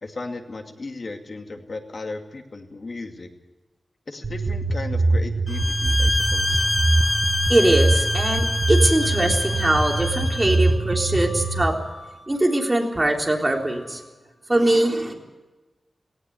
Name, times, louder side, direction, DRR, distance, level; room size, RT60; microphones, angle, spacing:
voice 1, 0.0-3.3 4.1-6.6, left 3 dB, 50° left, 4 dB, 2.5 m, -35 dB
sound 1, 4.2-11.6, right 2 dB, 55° right, 1.6 m, -23 dB
sound 2, 5.5-10.7, left 2 dB, 25° left, 0.7 m, -26 dB
voice 2, 7.5-11.8 12.3-14.0 14.5-15.1, right 1 dB, 20° right, 1 dB, 3.7 m, -21 dB
Wind instrument woodwind instrument, 10.1-14.2, left 2 dB, 85° left, 5.3 m, -46 dB
18.5 x 17.5 x 9.4 m, 1.2 s
wide cardioid pair, 100°, 0 cm